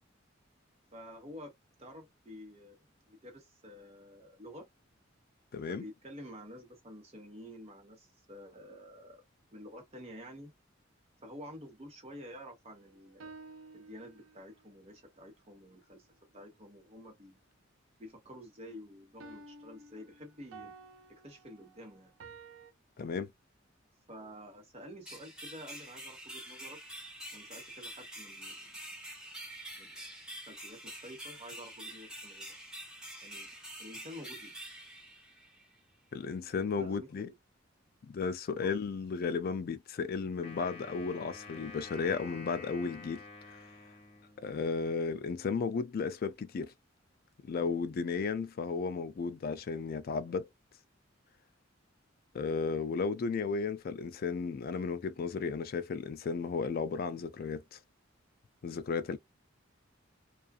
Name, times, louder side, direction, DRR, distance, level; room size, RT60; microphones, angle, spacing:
voice 1, 0.9-1.5 1.8-2.8 3.1-4.7 5.7-9.2 9.5-10.5 11.2-13.3 13.7-16.1 16.3-17.4 18.0-20.7 21.1-22.1 24.1-26.8 27.3-28.7 29.7-30.1 30.5-32.5 33.2-33.5 33.8-34.6 36.7-37.3 38.6-38.7, equal, 30° right, 1.1 m, -49 dB
voice 2, 5.5-5.8 23.0-23.3 36.1-37.3 38.1-43.2 44.4-46.7 47.4-50.5 52.3-57.8 58.6-59.2, left 5 dB, 50° left, 0.3 m, -34 dB
sound 1, 12.8-14.6 19.2-22.7, right 3 dB, 80° right, 0.5 m, -52 dB
sound 2, 25.0-35.8, right 1 dB, 5° right, 0.9 m, -47 dB
Wind instrument woodwind instrument, 40.4-44.7, left 3 dB, 30° left, 1.0 m, -49 dB
2.4 x 2.4 x 2.3 m
head